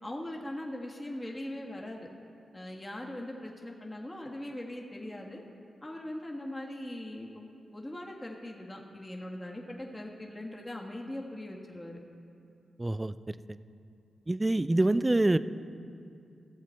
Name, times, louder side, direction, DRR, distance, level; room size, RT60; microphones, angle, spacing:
voice 1, 0.0-2.1 2.5-5.4 5.8-12.0, left 1 dB, 15° left, -1 dB, 1.4 m, -40 dB
voice 2, 12.8-13.3 14.3-15.4, right 2 dB, 20° right, 14 dB, 0.3 m, -26 dB
16.5 x 7.2 x 4.4 m, 2.5 s
cardioid pair, 65°, 0 cm